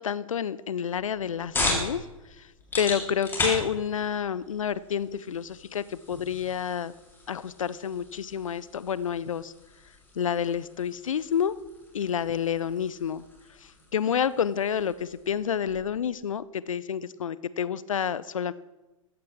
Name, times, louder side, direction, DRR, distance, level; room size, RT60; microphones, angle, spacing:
voice 1, 0.0-2.0 2.4-2.5 2.8-6.9 7.3-9.5 10.2-11.6 11.9-13.2 13.6-18.5, left 8 dB, 70° left, 19 dB, 0.6 m, -29 dB
sound 1, 0.9-16.0, left 2 dB, 10° left, 3.8 m, -37 dB
16.0 x 14.5 x 3.6 m, 1.1 s
figure-of-eight pair, 105°, 18 cm